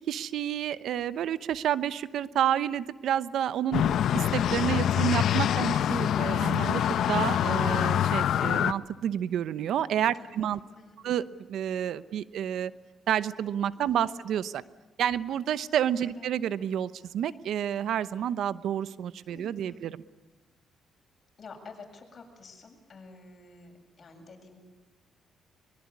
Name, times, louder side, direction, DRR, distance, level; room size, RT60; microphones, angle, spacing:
voice 1, 0.1-3.8 4.1-10.6 11.0-12.7 13.1-14.6 15.0-20.0, right 10 dB, 75° right, 15 dB, 0.9 m, -29 dB
sound 1, 3.7-8.7, left 10 dB, 70° left, 0.8 m, -25 dB
voice 2, 10.2-11.0 13.8-14.2 16.0-16.3 19.3-19.9 21.4-24.6, left 4 dB, 45° left, 2 dB, 7.6 m, -49 dB
23.5 x 23.0 x 9.7 m, 1.1 s
cardioid pair, 90°, 0 cm